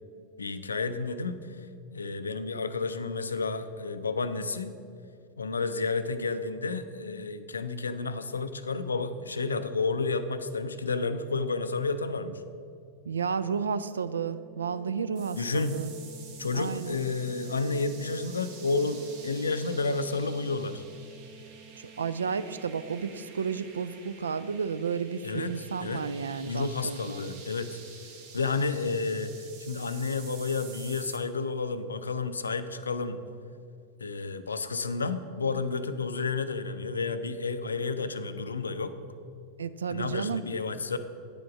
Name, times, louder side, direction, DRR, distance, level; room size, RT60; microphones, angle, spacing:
voice 1, 0.4-1.6 1.9-4.8 5.4-12.4 15.4-15.8 16.4-20.8 25.2-26.0 26.4-27.8 28.3-33.2 34.0-38.9 39.9-41.0, left 4 dB, 75° left, 12 dB, 0.4 m, -31 dB
voice 2, 13.1-15.9 16.5-17.0 22.0-27.2 39.6-40.4, right 6 dB, 70° right, 14 dB, 0.3 m, -32 dB
Organ, 13.4-24.3, right 3 dB, 25° right, 1.5 m, -53 dB
sound 1, 15.2-31.2, right 5 dB, 50° right, 1.2 m, -49 dB
9.1 x 5.0 x 6.1 m, 2.5 s
figure-of-eight pair, 90°, 0 cm